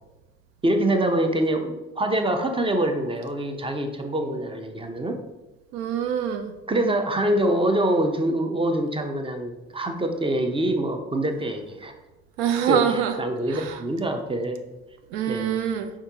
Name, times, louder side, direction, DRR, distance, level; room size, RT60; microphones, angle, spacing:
voice 1, 0.6-5.2 6.7-11.9 12.7-14.6 15.3-15.5, right 1 dB, 15° right, 5 dB, 0.6 m, -25 dB
voice 2, 5.7-6.5 12.4-13.1 13.5-13.6 15.1-15.9, right 8 dB, 75° right, 7 dB, 0.5 m, -24 dB
4.5 x 3.5 x 2.8 m, 1.0 s
hypercardioid pair, 50°, 32 cm